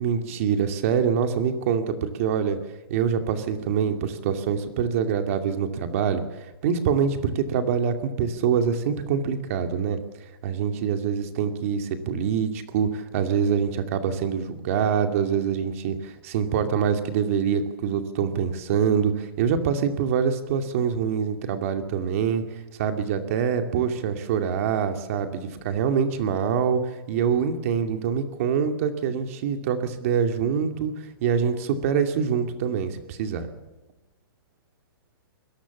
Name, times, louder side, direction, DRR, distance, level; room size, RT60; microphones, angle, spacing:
voice 1, 0.0-2.6 2.9-6.3 6.6-10.0 10.4-22.4 22.8-26.8 27.1-30.9 31.2-33.5, right 7 dB, 35° right, 7 dB, 2.4 m, -25 dB
27.5 x 21.5 x 7.3 m, 1.1 s
hypercardioid pair, 170°, 12 cm